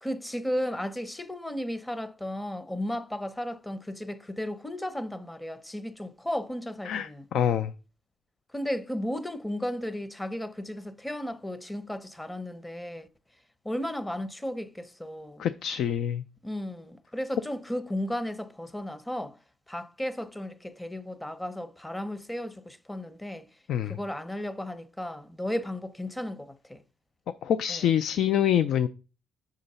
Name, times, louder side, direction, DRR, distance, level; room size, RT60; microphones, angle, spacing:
voice 1, 0.0-7.3 8.5-13.1 13.6-15.4 16.4-19.4 19.7-23.5 23.8-26.8 27.7-27.9, left 1 dB, 10° left, 0.7 m, -34 dB
voice 2, 6.9-7.7 15.4-16.2 23.7-24.0 27.4-28.9, left 10 dB, 75° left, 0.3 m, -26 dB
7.0 x 3.8 x 5.4 m
cardioid pair, 90°, 0 cm